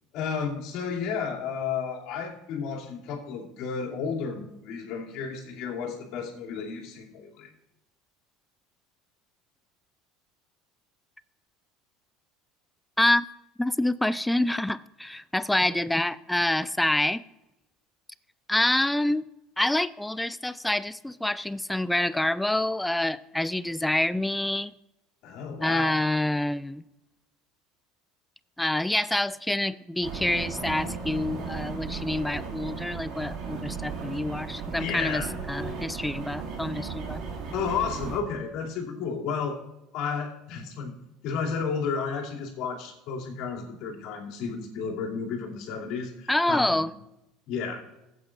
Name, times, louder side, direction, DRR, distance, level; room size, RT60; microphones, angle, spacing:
voice 1, 0.1-7.5 25.2-26.0 34.8-35.3 37.2-37.3 37.5-39.6 39.9-40.9 41.2-46.8 47.5-47.8, left 6 dB, 60° left, -1 dB, 2.7 m, -32 dB
voice 2, 13.6-17.2 18.5-19.3 19.6-24.7 25.6-26.8 28.6-37.2 46.3-46.9, left 1 dB, 5° left, 17 dB, 0.4 m, -27 dB
sound 1, 30.0-38.2, right 5 dB, 55° right, 2.2 m, -36 dB
17.0 x 8.6 x 2.5 m, 0.90 s
hypercardioid pair, 80°, 0 cm